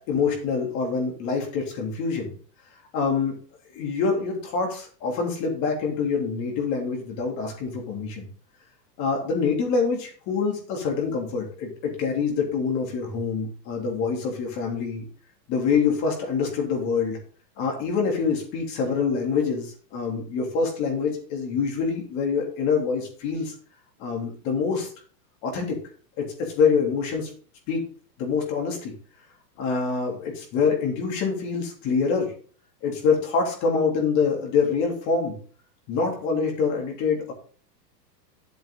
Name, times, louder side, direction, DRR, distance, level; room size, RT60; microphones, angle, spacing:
voice 1, 0.1-2.3 2.9-3.3 3.7-8.3 9.0-15.1 15.5-17.2 17.6-23.5 24.0-24.9 25.4-25.8 26.2-27.3 27.7-27.8 28.2-28.9 29.6-32.3 32.8-35.4 35.9-37.3, left 5 dB, 35° left, 0 dB, 3.2 m, -25 dB
10.5 x 8.0 x 3.8 m, 0.41 s
supercardioid pair, 150°, 50 cm